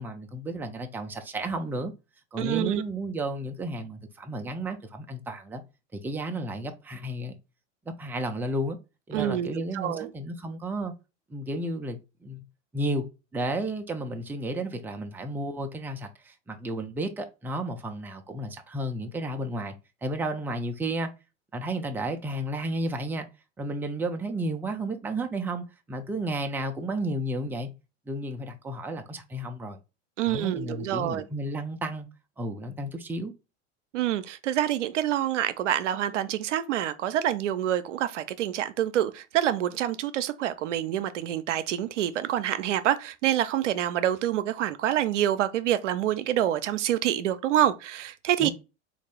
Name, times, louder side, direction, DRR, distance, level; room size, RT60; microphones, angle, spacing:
voice 1, 0.0-1.9 2.3-5.6 5.9-7.3 7.9-8.8 9.1-10.9 11.3-12.4 12.7-13.0 13.3-19.7 20.0-21.1 21.5-23.3 23.6-27.7 28.1-29.8 30.2-32.1 32.4-33.3 48.4-48.5, right 1 dB, 5° right, 0.4 m, -32 dB
voice 2, 2.4-2.8 9.1-10.1 30.2-31.2 33.9-48.5, right 11 dB, 80° right, 0.5 m, -27 dB
3.5 x 2.5 x 3.3 m
hypercardioid pair, 90°, 35 cm